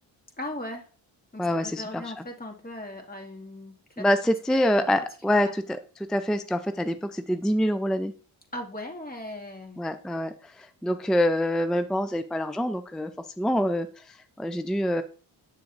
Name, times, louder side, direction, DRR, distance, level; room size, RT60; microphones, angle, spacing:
voice 1, 0.4-0.9 1.3-4.0 4.5-4.6 5.4-5.5 8.5-9.8, left 1 dB, 20° left, 1 dB, 2.3 m, -38 dB
voice 2, 1.4-2.0 4.0-5.8 6.1-8.1 9.8-13.1 13.4-15.0, equal, ahead, 10 dB, 0.5 m, -26 dB
7.9 x 6.7 x 2.6 m, 0.38 s
supercardioid pair, 50°, 46 cm